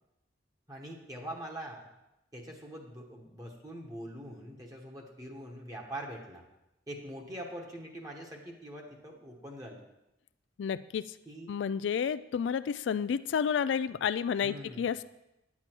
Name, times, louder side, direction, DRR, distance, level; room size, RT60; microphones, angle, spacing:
voice 1, 0.7-1.9 2.3-6.5 6.9-9.8 11.3-11.5 14.4-14.9, right 1 dB, 20° right, 0 dB, 1.2 m, -43 dB
voice 2, 10.6-11.1 11.5-15.0, left 7 dB, 70° left, 14 dB, 0.3 m, -30 dB
10.0 x 8.5 x 4.5 m, 0.92 s
head